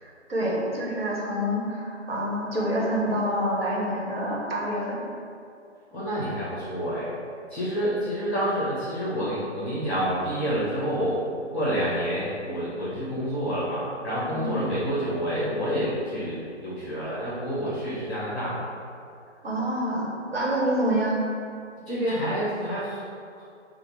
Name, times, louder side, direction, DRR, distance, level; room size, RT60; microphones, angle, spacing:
voice 1, 0.0-5.1 14.3-14.6 19.4-21.2, equal, 55° right, -4 dB, 1.1 m, -27 dB
voice 2, 5.9-7.2 7.5-11.2 11.5-18.6 21.9-23.0, equal, 15° left, -9 dB, 0.8 m, -28 dB
5.2 x 2.1 x 4.5 m, 2.4 s
figure-of-eight pair, 150°, 37 cm